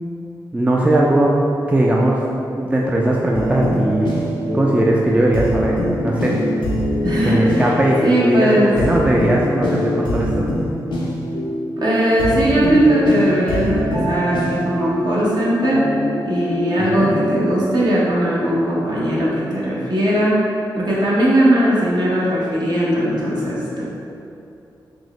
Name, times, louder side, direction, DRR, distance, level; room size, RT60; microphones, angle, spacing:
voice 1, 0.5-1.3 1.7-2.2 2.5-4.2 4.5-5.8 6.0-6.4 7.2-10.4 16.8-17.1, right 1 dB, 15° right, -3 dB, 0.3 m, -18 dB
sound 1, 3.3-18.0, equal, 90° left, 0.5 m, -24 dB
voice 2, 7.0-8.8 11.8-15.8 16.2-20.4 20.8-23.9, right 1 dB, 55° right, -7 dB, 0.9 m, -18 dB
3.5 x 2.1 x 3.0 m, 2.6 s
cardioid pair, 50°, 8 cm